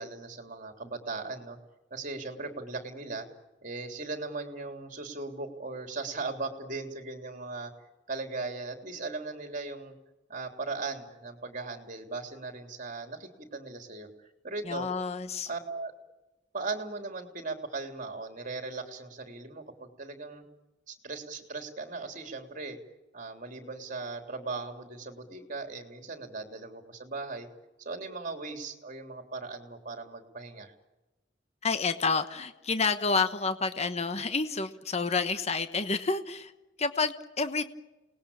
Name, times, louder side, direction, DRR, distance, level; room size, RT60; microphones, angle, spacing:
voice 1, 0.0-1.6 1.9-3.3 3.6-7.7 8.1-9.9 10.3-14.1 14.4-14.9 15.5-15.9 16.5-20.4 20.9-22.8 23.1-27.5 27.8-30.7, right 3 dB, 45° right, 5 dB, 3.5 m, -38 dB
voice 2, 14.6-15.5 31.6-36.5 36.8-37.6, left 4 dB, 35° left, 9 dB, 1.2 m, -29 dB
29.0 x 20.0 x 8.7 m, 1.1 s
head